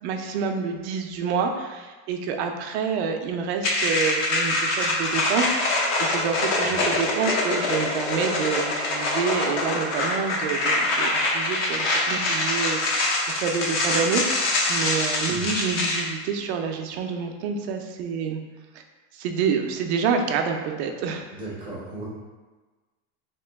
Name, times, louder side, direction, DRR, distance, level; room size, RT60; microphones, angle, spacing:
voice 1, 0.0-13.1 13.4-14.2 14.7-18.4 18.7-18.8 19.1-21.3, right 6 dB, 60° right, 4 dB, 0.5 m, -28 dB
sound 1, 3.6-16.0, left 2 dB, 50° left, 0.7 m, -24 dB
voice 2, 21.3-22.1, right 2 dB, 15° right, -6 dB, 0.5 m, -36 dB
3.0 x 2.9 x 3.4 m, 1.3 s
supercardioid pair, 165°, 37 cm